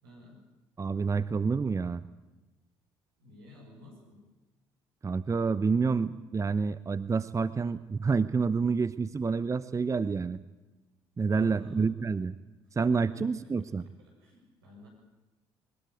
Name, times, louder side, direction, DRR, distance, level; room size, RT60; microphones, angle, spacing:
voice 1, 0.0-0.5 3.2-4.3 11.3-11.9 12.6-12.8 13.1-14.9, left 2 dB, 80° right, 0 dB, 7.3 m, -52 dB
voice 2, 0.8-2.0 5.0-10.4 11.2-12.3 12.8-13.8, right 5 dB, 25° right, 16 dB, 0.8 m, -28 dB
22.0 x 20.5 x 9.2 m, 1.1 s
figure-of-eight pair, 50°, 12 cm